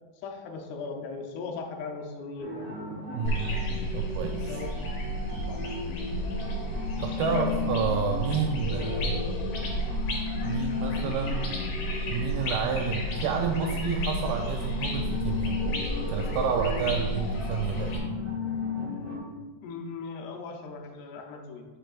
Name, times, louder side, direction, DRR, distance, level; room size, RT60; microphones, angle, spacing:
voice 1, 0.2-2.7 4.5-4.8 5.5-5.6 7.3-7.5 19.6-21.7, left 4 dB, 80° left, 2 dB, 2.8 m, -37 dB
sound 1, 2.4-19.2, left 3 dB, 15° right, 1.0 m, -35 dB
voice 2, 3.1-3.5 3.9-4.6 7.0-9.2 10.4-11.5 12.1-15.6 16.1-18.2, right 6 dB, 85° right, 3 dB, 2.1 m, -30 dB
sound 2, 3.2-18.0, equal, 65° left, 1.9 m, -32 dB
8.8 x 6.9 x 2.5 m, 1.3 s
omnidirectional pair, 4.6 m